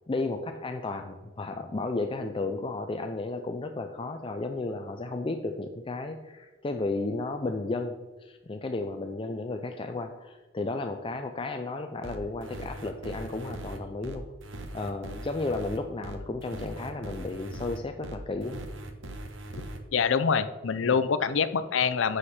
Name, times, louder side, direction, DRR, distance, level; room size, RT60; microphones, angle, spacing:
voice 1, 0.1-14.3 14.7-18.7 20.9-21.0, left 3 dB, 25° left, 6 dB, 0.5 m, -33 dB
sound 1, 12.0-19.8, right 1 dB, 75° right, 1.1 m, -40 dB
voice 2, 19.9-22.2, left 6 dB, 80° left, 12 dB, 0.6 m, -25 dB
9.9 x 6.5 x 4.3 m, 1.2 s
head